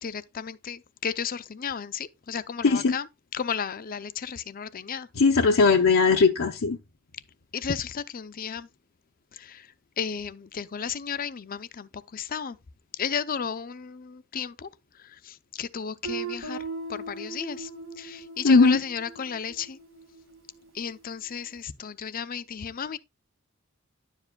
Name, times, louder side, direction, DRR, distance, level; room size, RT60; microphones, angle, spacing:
voice 1, 0.0-3.1 3.3-5.1 7.5-8.7 9.3-9.7 10.0-12.6 13.0-14.7 15.2-16.6 16.9-17.7 18.0-19.8 20.7-23.0, left 7 dB, 45° left, 0.5 m, -33 dB
voice 2, 2.6-3.0 5.2-6.8 18.4-18.8, left 4 dB, 85° left, 0.8 m, -19 dB
Guitar, 16.0-20.7, right 4 dB, 70° right, 1.9 m, -39 dB
10.5 x 7.3 x 2.2 m
head